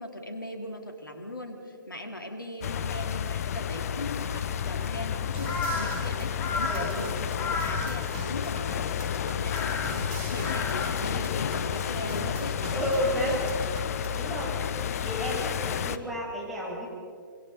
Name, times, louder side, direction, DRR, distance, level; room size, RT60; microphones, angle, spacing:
voice 1, 0.0-9.8 10.3-12.9 13.1-13.4, left 1 dB, 75° left, 4 dB, 3.0 m, -39 dB
sound 1, 2.6-16.0, left 9 dB, 45° left, 0.8 m, -31 dB
Crow, 3.5-12.0, left 3 dB, 20° left, 2.2 m, -37 dB
sound 2, 5.3-14.3, right 3 dB, 35° right, 3.2 m, -43 dB
voice 2, 12.7-13.4 14.1-14.6 15.0-16.9, equal, ahead, -6 dB, 7.3 m, -31 dB
26.5 x 25.0 x 4.2 m, 2.2 s
figure-of-eight pair, 120°, 11 cm